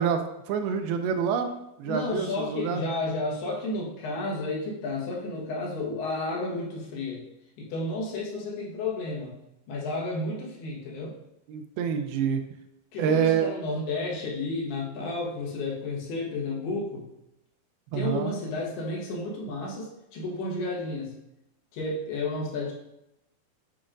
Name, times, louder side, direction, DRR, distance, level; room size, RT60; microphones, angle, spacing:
voice 1, 0.0-1.5 1.8-2.8 11.5-12.4 13.0-13.5 17.9-18.3, right 7 dB, 80° right, 6 dB, 2.4 m, -27 dB
voice 2, 1.8-7.2 7.6-9.4 9.7-11.2 12.9-17.1 17.9-21.1 21.7-22.7, left 2 dB, 85° left, -3 dB, 3.4 m, -32 dB
9.4 x 4.9 x 2.5 m, 0.87 s
omnidirectional pair, 4.5 m